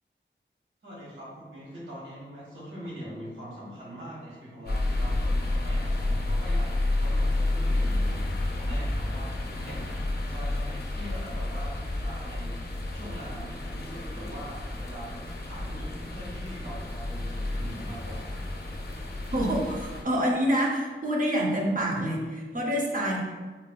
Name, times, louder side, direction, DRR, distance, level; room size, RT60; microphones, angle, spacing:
voice 1, 0.8-6.7 6.9-8.2 8.5-18.2, equal, 85° right, -8 dB, 1.3 m, -42 dB
sound 1, 4.7-20.0, left 2 dB, 55° left, 0.5 m, -30 dB
voice 2, 19.3-23.2, equal, 45° right, -2 dB, 0.7 m, -27 dB
4.1 x 2.3 x 2.3 m, 1.4 s
wide cardioid pair, 85°, 20 cm